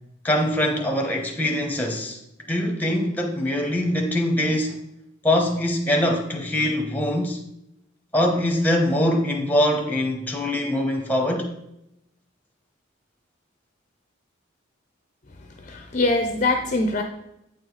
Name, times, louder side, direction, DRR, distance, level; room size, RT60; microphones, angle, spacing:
voice 1, 0.2-2.2 2.5-4.8 5.2-7.4 8.1-11.5, left 1 dB, 10° left, 0.9 m, -23 dB
voice 2, 15.6-17.0, left 2 dB, 35° left, 0.5 m, -23 dB
8.7 x 4.8 x 3.9 m
head